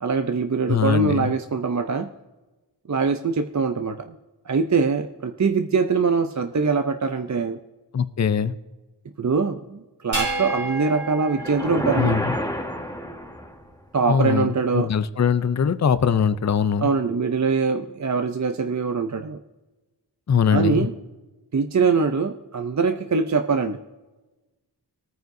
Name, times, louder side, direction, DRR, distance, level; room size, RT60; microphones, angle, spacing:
voice 1, 0.0-2.1 2.9-4.2 4.5-7.6 9.2-12.2 13.9-14.9 16.8-19.4 20.5-20.9 21.5-23.8, right 5 dB, 45° right, 7 dB, 0.5 m, -23 dB
voice 2, 0.7-1.3 7.9-8.5 12.0-12.3 14.1-16.9 20.3-20.9, left 7 dB, 40° left, 14 dB, 0.5 m, -21 dB
sound 1, 10.1-12.7, right 2 dB, 80° right, 2.7 m, -31 dB
sound 2, 11.4-13.7, left 1 dB, 10° left, 1.5 m, -28 dB
19.0 x 9.3 x 2.6 m, 1.1 s
wide cardioid pair, 55°, 42 cm